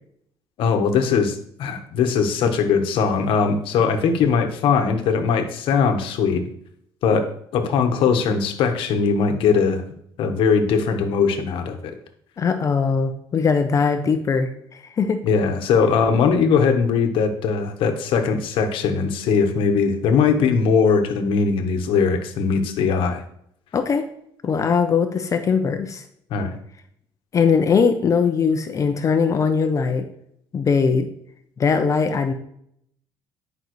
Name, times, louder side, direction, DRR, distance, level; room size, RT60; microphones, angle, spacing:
voice 1, 0.6-6.4 7.0-9.8 10.2-11.9 15.3-23.2 26.3-26.6, left 5 dB, 70° left, 6 dB, 1.1 m, -20 dB
voice 2, 12.4-15.2 23.7-24.1 24.4-26.0 27.3-30.1 30.5-31.1 31.6-32.3, left 5 dB, 35° left, 7 dB, 0.7 m, -20 dB
10.5 x 5.4 x 3.1 m, 0.71 s
cardioid pair, 120°, 9 cm